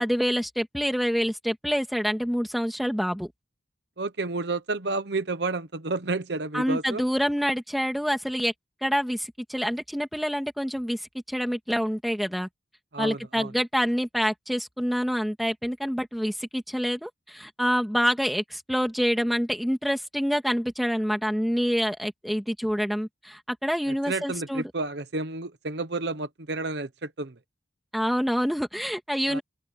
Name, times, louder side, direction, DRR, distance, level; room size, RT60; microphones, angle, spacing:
voice 1, 0.0-3.3 6.5-8.5 8.8-12.5 13.0-24.6 27.9-29.4, equal, ahead, 2.5 m, -27 dB
voice 2, 4.0-7.0 12.9-13.5 23.9-27.4 29.3-29.4, right 3 dB, 60° right, 1.0 m, -31 dB
open air
head